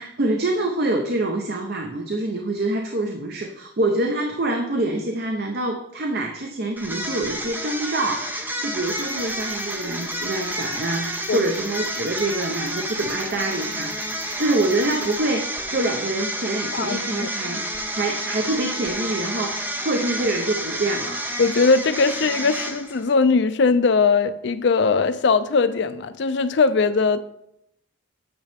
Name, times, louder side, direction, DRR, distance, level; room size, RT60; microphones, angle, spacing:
voice 1, 0.0-17.6 17.9-21.2, right 2 dB, 50° right, 0.7 m, -26 dB
sound 1, 6.8-23.1, right 1 dB, 10° right, 0.6 m, -30 dB
Cricket, 8.8-15.2, right 3 dB, 90° right, 2.4 m, -47 dB
voice 2, 16.7-17.3 21.4-27.2, left 4 dB, 55° left, 0.4 m, -20 dB
8.8 x 6.3 x 3.5 m
head